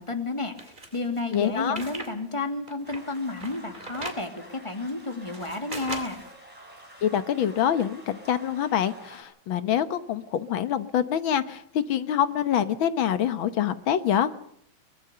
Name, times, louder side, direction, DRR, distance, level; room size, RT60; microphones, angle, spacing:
voice 1, 0.0-6.2, left 3 dB, 15° left, 6 dB, 2.3 m, -31 dB
sound 1, 0.6-2.1 2.5-4.3 4.9-6.3, right 2 dB, 25° right, 3.0 m, -39 dB
voice 2, 1.3-1.8 7.0-14.3, left 9 dB, 80° left, 12 dB, 1.9 m, -25 dB
sound 2, 2.8-9.2, right 1 dB, 5° right, 6.7 m, -49 dB
23.5 x 21.0 x 6.8 m, 0.67 s
omnidirectional pair, 2.2 m